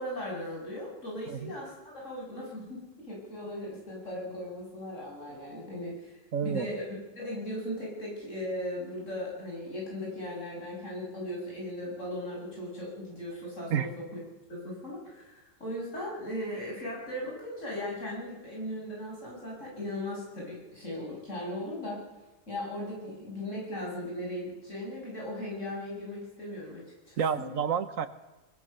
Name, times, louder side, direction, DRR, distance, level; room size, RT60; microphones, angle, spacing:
voice 1, 0.0-6.1 6.4-14.2 14.5-22.0 22.5-27.5, left 1 dB, 70° left, -2 dB, 7.6 m, -38 dB
voice 2, 6.3-6.7 13.7-13.9 27.2-28.1, right 7 dB, 90° right, 11 dB, 1.6 m, -29 dB
21.5 x 21.5 x 6.9 m, 1.1 s
omnidirectional pair, 1.3 m